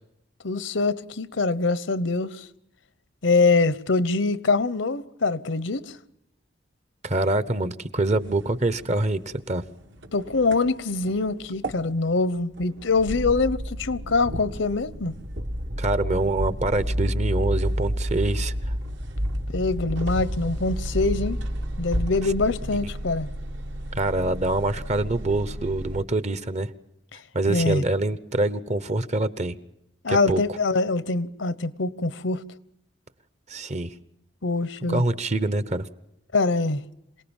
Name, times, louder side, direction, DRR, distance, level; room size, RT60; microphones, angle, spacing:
voice 1, 0.4-2.5 3.2-6.0 10.1-15.1 19.5-21.4 21.8-23.3 27.5-27.8 30.0-32.4 34.4-35.0 36.3-36.8, left 3 dB, 80° left, 1.0 m, -24 dB
voice 2, 7.0-9.2 9.5-9.6 15.8-18.7 23.9-26.7 27.3-29.5 30.1-30.4 33.5-33.9 34.9-35.9, right 2 dB, 35° right, 1.0 m, -25 dB
sound 1, 8.2-26.0, equal, 65° right, 2.0 m, -31 dB
27.0 x 19.0 x 7.3 m
head